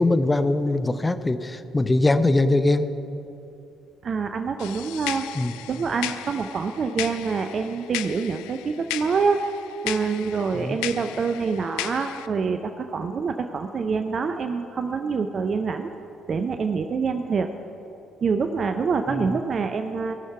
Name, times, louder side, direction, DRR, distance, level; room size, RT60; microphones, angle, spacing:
voice 1, 0.0-2.9 5.4-5.5 10.6-10.8 19.1-19.3, left 2 dB, 20° left, 11 dB, 0.7 m, -22 dB
voice 2, 4.0-5.3 5.7-9.4 9.8-15.9 16.3-17.5 18.2-20.1, right 5 dB, 50° right, 7 dB, 0.5 m, -26 dB
sound 1, 4.6-12.3, left 14 dB, 80° left, 0.3 m, -36 dB
18.0 x 6.3 x 5.7 m, 2.9 s
hypercardioid pair, 50°, 0 cm